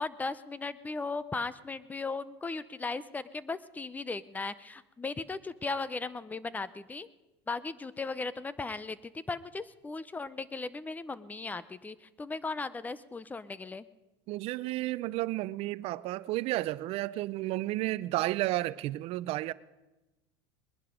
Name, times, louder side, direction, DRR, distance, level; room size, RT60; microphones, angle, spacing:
voice 1, 0.0-7.1 7.5-13.9, left 3 dB, 10° left, 0.6 m, -37 dB
voice 2, 14.3-19.5, right 17 dB, 50° right, 0.5 m, -32 dB
21.0 x 10.5 x 5.1 m
supercardioid pair, 120°, 13 cm